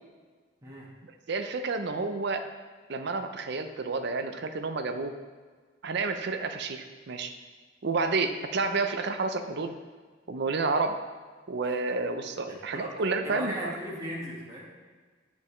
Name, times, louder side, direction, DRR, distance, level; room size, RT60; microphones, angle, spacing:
voice 1, 1.3-2.5 2.9-5.2 5.8-7.3 7.8-9.7 10.3-11.0 11.5-13.5, right 3 dB, 60° right, 7 dB, 0.5 m, -30 dB
voice 2, 12.5-12.9 13.2-14.7, equal, 20° right, -5 dB, 1.5 m, -38 dB
9.0 x 5.2 x 3.2 m, 1.5 s
head